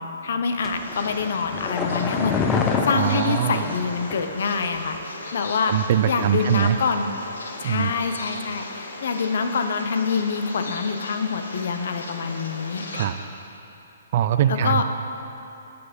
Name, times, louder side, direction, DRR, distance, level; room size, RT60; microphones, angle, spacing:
voice 1, 0.0-5.7 6.1-7.1 7.6-12.8 14.5-14.8, left 5 dB, 65° left, 7 dB, 0.6 m, -26 dB
sound 1, 0.6-13.1, left 2 dB, 90° left, 0.9 m, -38 dB
sound 2, 0.6-4.3 4.6-4.7, left 5 dB, 15° left, 0.5 m, -27 dB
voice 2, 2.9-3.6 5.7-6.8 7.6-7.9 12.9-13.2 14.1-14.8, right 10 dB, 45° right, 11 dB, 0.3 m, -22 dB
sound 3, 4.6-5.9 6.1-6.7, left 1 dB, 45° left, 1.7 m, -46 dB
6.8 x 6.5 x 5.2 m, 2.9 s
hypercardioid pair, 155°, 0 cm